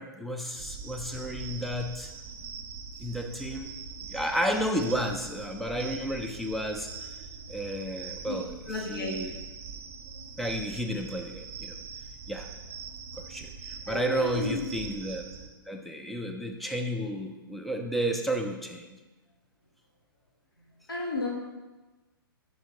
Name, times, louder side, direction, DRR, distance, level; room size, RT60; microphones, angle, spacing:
voice 1, 0.0-2.1 3.0-3.7 4.0-6.9 7.5-9.3 10.4-11.8 12.3-12.5 13.2-15.3 15.7-18.9, equal, ahead, 3 dB, 0.3 m, -32 dB
sound 1, 0.5-15.5, right 5 dB, 40° right, 0.7 m, -42 dB
voice 2, 8.7-9.2 13.9-14.7 20.9-21.3, left 2 dB, 70° left, -3 dB, 1.6 m, -32 dB
5.2 x 3.9 x 4.7 m, 1.2 s
figure-of-eight pair, 115°, 12 cm